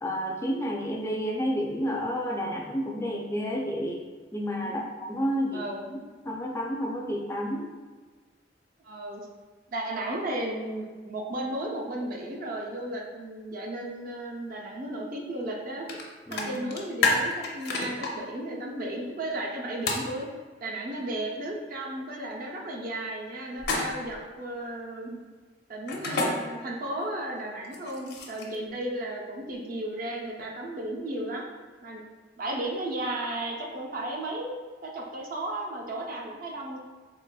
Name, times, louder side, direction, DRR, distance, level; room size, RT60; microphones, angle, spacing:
voice 1, 0.0-4.0 4.3-5.7 6.2-7.7 16.3-16.6, equal, 15° left, -1 dB, 0.3 m, -30 dB
voice 2, 5.5-5.9 8.8-9.2 9.7-15.9 16.3-20.3 20.6-25.2 25.7-31.5 31.8-32.0 32.4-36.8, right 1 dB, 50° right, 0 dB, 0.6 m, -34 dB
sound 1, 15.9-16.0 16.3-18.1 19.9-20.1 23.6-24.1 25.9-26.3 27.6-28.6, left 3 dB, 60° left, 0.6 m, -28 dB
3.9 x 3.3 x 2.2 m, 1.4 s
head